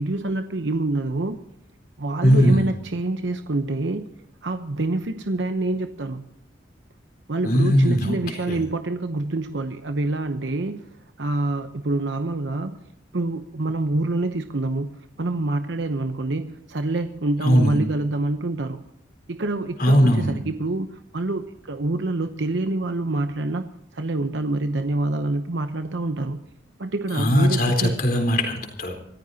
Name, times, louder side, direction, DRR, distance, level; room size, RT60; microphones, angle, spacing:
voice 1, 0.0-1.4 2.0-4.1 4.4-6.2 7.3-12.8 13.1-18.8 19.3-23.6 23.9-26.4 26.8-27.9, right 2 dB, 75° right, 8 dB, 0.9 m, -26 dB
voice 2, 2.2-2.7 7.4-8.2 8.5-8.6 17.4-17.8 19.8-20.3 27.1-28.9, equal, 50° left, 3 dB, 4.0 m, -19 dB
26.5 x 14.5 x 2.9 m, 0.80 s
head